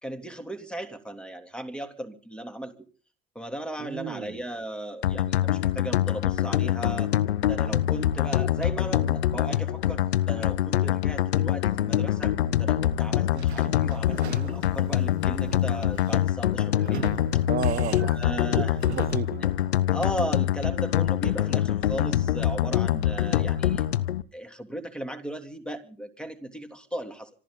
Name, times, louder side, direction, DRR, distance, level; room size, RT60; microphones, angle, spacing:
voice 1, 0.0-2.7 3.3-7.1 7.5-12.3 12.6-17.1 17.3-17.4 18.0-18.7 19.9-23.8 24.3-27.3, right 1 dB, 5° left, 7 dB, 3.2 m, -36 dB
voice 2, 3.8-4.4 17.5-18.2 18.6-19.5, right 9 dB, 30° right, 14 dB, 0.8 m, -33 dB
sound 1, 5.0-24.2, left 11 dB, 75° left, 0.8 m, -25 dB
Sliding door / Squeak, 13.3-19.4, right 10 dB, 85° right, 0.7 m, -42 dB
25.5 x 13.5 x 4.0 m, 0.41 s
figure-of-eight pair, 70°, 32 cm